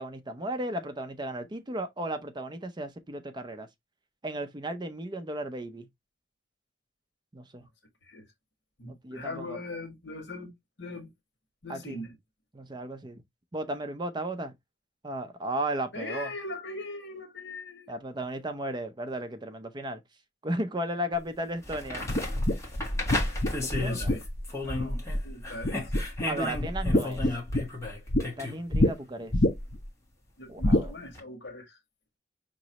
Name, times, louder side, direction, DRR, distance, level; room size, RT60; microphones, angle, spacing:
voice 1, 0.0-3.7 4.2-5.9 7.3-7.6 8.9-9.6 11.7-12.0 12.5-13.2 13.5-14.5 15.0-16.3 17.9-20.0 20.4-22.1 23.6-24.1 26.3-27.2 28.4-29.3 30.5-31.0, right 1 dB, 25° right, 0.5 m, -35 dB
voice 2, 8.8-10.5 10.8-11.1 11.6-12.1 15.9-17.9 23.8-24.2 24.6-25.9 26.3-26.5 30.4-31.8, left 2 dB, 70° left, 1.5 m, -40 dB
sound 1, 21.1-21.2 21.6-25.2 25.4-28.6 31.1-31.2, left 2 dB, 15° left, 1.4 m, -34 dB
sound 2, 22.1-25.3 25.6-26.2 26.5-28.2 28.7-28.9 29.3-29.8 30.6-30.9, left 1 dB, 35° left, 0.9 m, -26 dB
5.1 x 3.0 x 2.8 m
head